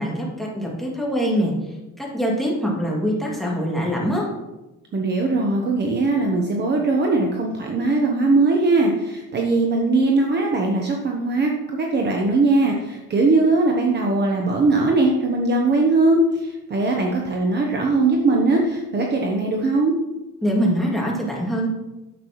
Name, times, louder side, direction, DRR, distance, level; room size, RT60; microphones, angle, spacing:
voice 1, 0.0-1.5 2.0-4.3 20.4-21.7, equal, ahead, -3 dB, 2.3 m, -23 dB
voice 2, 4.9-19.9, right 2 dB, 30° right, 1 dB, 0.9 m, -20 dB
10.0 x 7.3 x 3.1 m, 1.0 s
cardioid pair, 135°, 33 cm